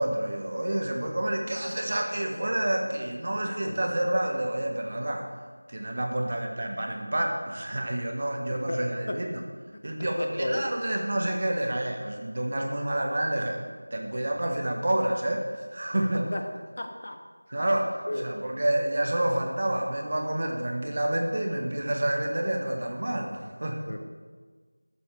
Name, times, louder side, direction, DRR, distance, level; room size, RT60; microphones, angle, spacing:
voice 1, 0.0-5.3 5.7-9.4 9.8-13.6 13.9-16.3 17.5-23.8, right 1 dB, 30° right, 2 dB, 1.4 m, -28 dB
voice 2, 8.5-9.2 9.7-10.7 15.9-16.5 16.8-17.2 17.6-17.7 18.1-18.2 23.9-24.0, left 1 dB, 30° left, 5 dB, 1.1 m, -34 dB
13.0 x 8.4 x 6.8 m, 1.5 s
figure-of-eight pair, 180°, 0 cm